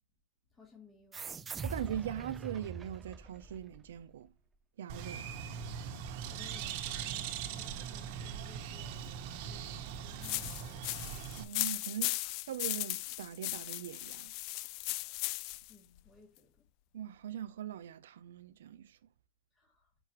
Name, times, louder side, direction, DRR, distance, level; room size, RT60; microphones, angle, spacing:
voice 1, 0.5-1.5 6.3-11.1 15.7-16.7 19.5-19.9, left 4 dB, 20° left, 2.6 m, -60 dB
sound 1, 1.1-4.2, right 5 dB, 20° right, 0.5 m, -43 dB
voice 2, 1.6-4.3 4.8-5.2 11.4-12.2 12.5-14.3 16.9-19.0, right 10 dB, 90° right, 0.5 m, -41 dB
Bird, 4.9-11.4, right 8 dB, 60° right, 1.3 m, -41 dB
sound 2, 10.2-15.7, left 21 dB, 50° left, 0.3 m, -37 dB
6.7 x 5.8 x 2.9 m
supercardioid pair, 130°, 0 cm